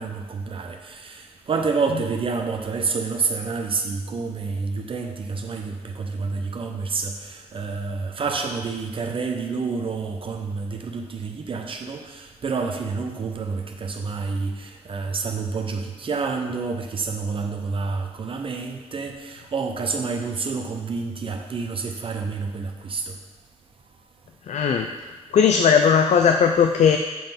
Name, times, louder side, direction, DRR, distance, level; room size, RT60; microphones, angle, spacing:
voice 1, 0.0-23.1, right 4 dB, 45° right, 4 dB, 0.6 m, -28 dB
voice 2, 24.5-24.9 25.3-27.0, left 7 dB, 70° left, 5 dB, 0.4 m, -17 dB
7.7 x 3.9 x 5.2 m, 1.2 s
wide cardioid pair, 115°, 12 cm